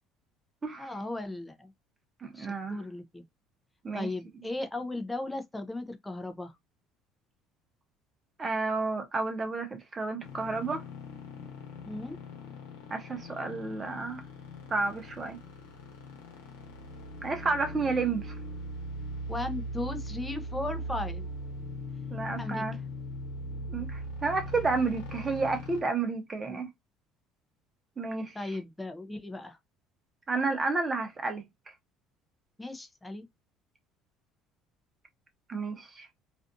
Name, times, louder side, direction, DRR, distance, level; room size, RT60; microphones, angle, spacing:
voice 1, 0.8-1.7 2.3-3.2 3.9-6.5 11.9-12.2 19.3-21.3 22.4-22.6 26.5-26.6 28.3-29.6 32.6-33.2, left 2 dB, 10° left, 0.5 m, -36 dB
voice 2, 2.2-2.8 3.8-4.1 8.4-10.8 12.9-14.2 14.7-15.4 17.2-18.4 22.1-22.7 23.7-26.7 28.0-28.6 30.3-31.4 35.5-36.1, right 3 dB, 25° right, 0.8 m, -31 dB
sound 1, 10.2-25.8, equal, 90° left, 0.9 m, -40 dB
2.6 x 2.3 x 2.5 m
cardioid pair, 120°, 0 cm